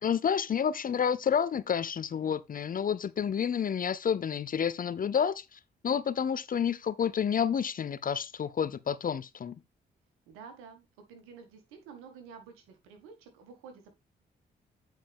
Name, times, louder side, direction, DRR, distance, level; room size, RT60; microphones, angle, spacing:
voice 1, 0.0-9.5, left 7 dB, 45° left, 0.6 m, -29 dB
voice 2, 10.3-13.9, right 6 dB, 85° right, 1.9 m, -50 dB
8.9 x 5.1 x 3.6 m
hypercardioid pair, 45°, 21 cm